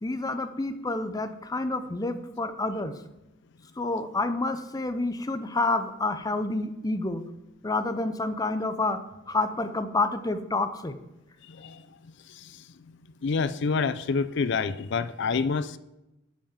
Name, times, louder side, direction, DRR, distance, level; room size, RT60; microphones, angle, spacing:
voice 1, 0.0-2.9 3.8-7.2 7.6-9.0 9.3-11.0, left 2 dB, 20° left, 9 dB, 0.6 m, -28 dB
voice 2, 11.5-11.8 12.4-12.6 13.2-15.8, left 5 dB, 65° left, 14 dB, 0.5 m, -27 dB
8.8 x 5.5 x 7.3 m, 0.94 s
head